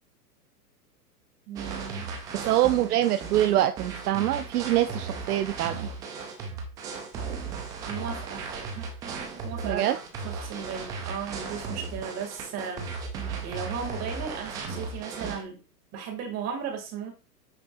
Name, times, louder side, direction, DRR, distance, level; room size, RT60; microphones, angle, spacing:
voice 1, 1.5-2.8 7.8-12.9 13.4-15.6 15.9-17.1, right 7 dB, 30° right, 2 dB, 2.5 m, -36 dB
sound 1, 1.6-15.4, right 4 dB, 10° right, 0.3 m, -36 dB
voice 2, 2.4-5.9 9.6-10.0, right 13 dB, 70° right, 10 dB, 0.7 m, -24 dB
8.2 x 5.3 x 2.5 m, 0.33 s
hypercardioid pair, 125°, 48 cm